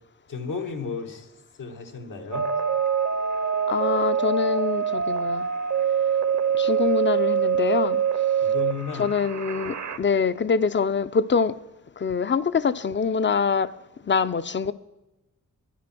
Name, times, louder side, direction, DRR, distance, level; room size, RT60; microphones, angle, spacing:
voice 1, 0.3-1.3 1.6-2.5 8.4-9.1 9.9-10.0, left 5 dB, 90° left, 1.6 m, -33 dB
sound 1, 2.3-10.0, right 7 dB, 60° right, 0.9 m, -24 dB
voice 2, 3.7-5.5 6.6-8.0 8.9-11.5 12.0-13.7 14.1-14.7, left 6 dB, 40° left, 0.5 m, -24 dB
12.0 x 10.5 x 6.0 m
wide cardioid pair, 110°, 31 cm